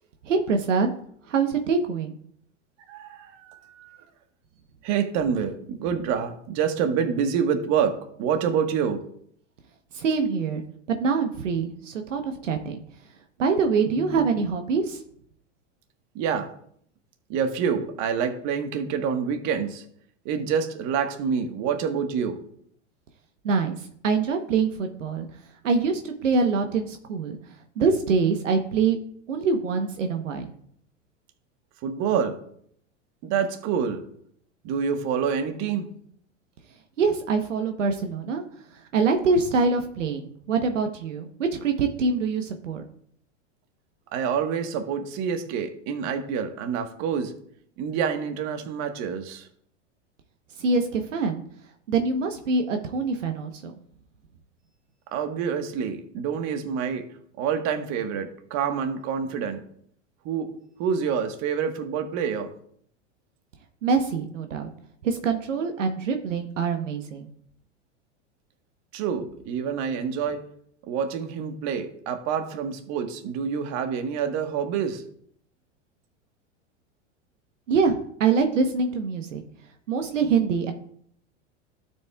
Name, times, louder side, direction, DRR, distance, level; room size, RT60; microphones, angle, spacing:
voice 1, 0.2-0.9 1.3-2.2 9.9-10.6 10.9-12.8 13.4-15.0 23.4-25.3 25.6-27.4 27.8-29.0 29.3-30.5 37.0-38.4 38.7-42.8 50.6-51.4 51.9-53.7 63.8-64.7 65.0-67.2 77.7-79.4 79.9-80.7, right 5 dB, 80° right, 6 dB, 1.1 m, -24 dB
voice 2, 2.9-4.0 4.8-9.0 13.9-14.2 16.1-16.5 17.3-19.8 20.2-22.4 31.8-32.3 33.2-34.0 34.6-35.9 44.1-47.3 47.8-49.5 55.1-57.1 57.4-59.6 60.2-60.5 60.8-62.5 68.9-70.4 70.9-75.0, right 7 dB, 45° right, 7 dB, 1.4 m, -27 dB
12.5 x 7.5 x 2.3 m, 0.65 s
hypercardioid pair, 100°, 37 cm